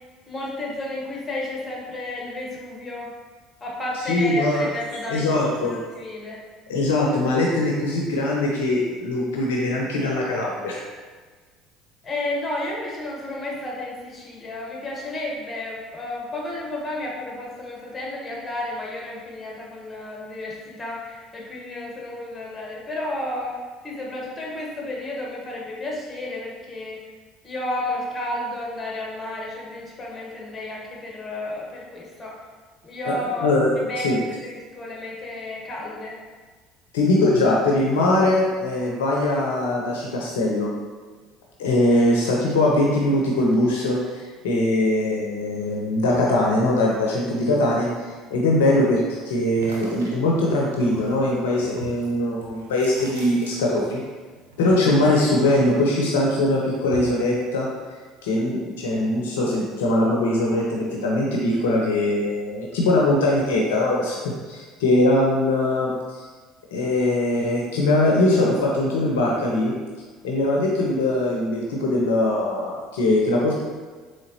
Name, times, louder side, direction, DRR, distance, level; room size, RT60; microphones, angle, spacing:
voice 1, 0.3-3.1 3.6-6.4 12.0-23.5 23.8-27.0 27.4-32.3 32.8-33.5 33.9-36.2, left 1 dB, 25° left, -3 dB, 1.2 m, -32 dB
voice 2, 4.1-4.7 5.1-5.8 6.7-10.8 33.0-33.1 33.4-33.7 34.0-34.2 36.9-40.7 41.6-54.0 54.6-57.7 58.2-64.2 64.5-66.2 66.7-69.7 70.2-73.6, left 1 dB, 80° left, -2 dB, 0.5 m, -21 dB
sound 1, 49.5-54.1 54.3-56.0 56.3-57.3, right 2 dB, 90° right, 0.6 m, -41 dB
3.9 x 3.1 x 2.7 m, 1.4 s
hypercardioid pair, 65°, 0 cm